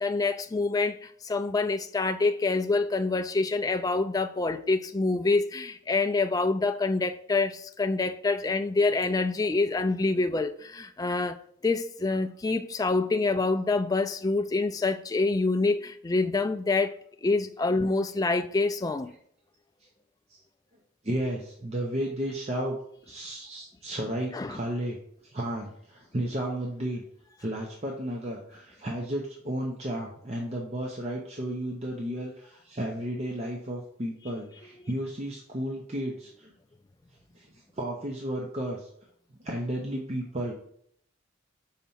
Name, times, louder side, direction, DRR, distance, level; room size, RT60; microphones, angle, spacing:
voice 1, 0.0-11.4 11.6-16.9 17.2-19.1 24.3-24.6, left 3 dB, 20° left, 0.3 m, -26 dB
voice 2, 21.0-22.8 23.0-25.0 25.3-27.0 27.4-36.5 37.3-38.9 39.4-40.5, right 1 dB, 30° right, 0.8 m, -33 dB
5.7 x 4.1 x 5.6 m
head